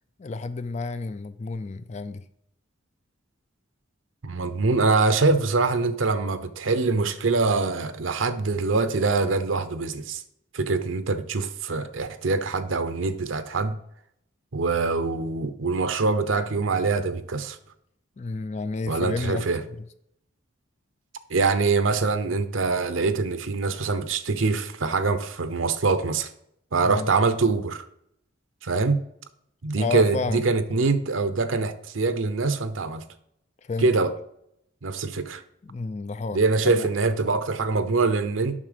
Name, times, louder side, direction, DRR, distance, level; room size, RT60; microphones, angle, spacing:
voice 1, 0.2-2.2 18.2-19.8 26.8-27.1 29.8-30.4 33.6-33.9 35.6-36.4 36.6-36.9, left 3 dB, 35° left, 12 dB, 0.4 m, -31 dB
voice 2, 4.2-10.2 10.5-13.8 14.5-17.6 18.9-19.6 21.3-26.3 26.7-27.9 28.6-29.0 29.6-33.0 33.8-34.1 34.8-35.4 36.3-38.6, right 3 dB, 85° right, 11 dB, 0.7 m, -24 dB
7.4 x 5.8 x 5.0 m, 0.73 s
head